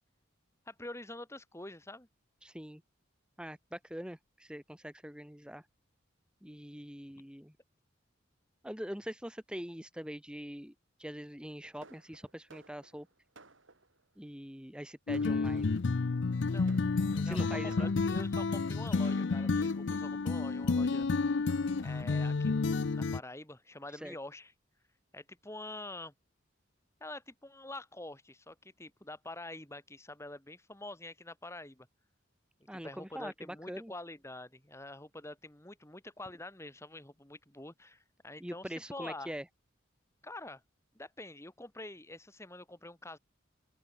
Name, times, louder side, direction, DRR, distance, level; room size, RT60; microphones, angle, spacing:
voice 1, 0.7-2.1 16.5-16.7 17.1-21.5 21.8-22.7 22.9-24.5 25.1-26.1 27.0-31.9 32.6-39.3 40.2-40.6 40.9-43.2, left 2 dB, 15° left, 2.1 m, -46 dB
voice 2, 2.4-2.8 3.4-5.6 6.4-7.5 8.6-10.7 11.0-13.1 14.2-15.7 17.2-17.9 23.9-24.1 32.7-33.9 38.4-39.4, equal, 5° right, 1.5 m, -43 dB
Fireworks, 11.8-14.1 14.8-14.9 15.1-16.0 16.7-18.4 19.0-19.9 20.7-20.8 21.1-21.2 21.5-21.9, right 3 dB, 75° right, 4.9 m, -59 dB
sound 1, 15.1-23.2, left 4 dB, 65° left, 0.5 m, -30 dB
open air
head